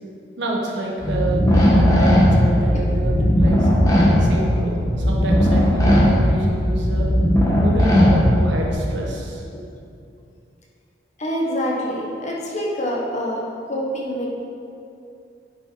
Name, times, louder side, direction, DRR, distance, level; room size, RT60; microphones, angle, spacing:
voice 1, 0.4-3.7 4.2-7.1 7.6-9.4, right 1 dB, 70° right, -2 dB, 1.4 m, -28 dB
sound 1, 1.0-8.7, equal, 15° left, 1.5 m, -17 dB
voice 2, 11.2-13.4 13.7-14.3, equal, 35° left, -3 dB, 1.2 m, -26 dB
9.7 x 5.9 x 4.3 m, 2.6 s
head